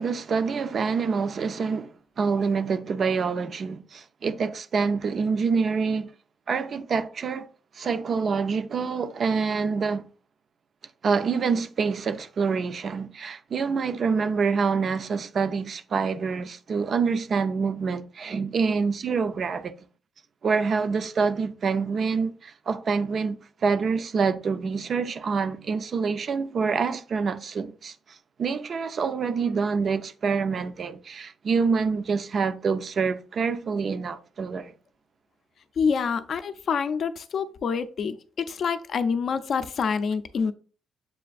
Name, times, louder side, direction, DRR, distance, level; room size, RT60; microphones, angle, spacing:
voice 1, 0.0-1.9 2.2-6.1 6.5-7.5 7.7-10.1 11.0-19.7 20.4-34.7, right 5 dB, 50° right, 0.4 m, -26 dB
voice 2, 35.8-40.5, left 6 dB, 55° left, 0.4 m, -27 dB
7.4 x 2.5 x 2.3 m
cardioid pair, 100°, 0 cm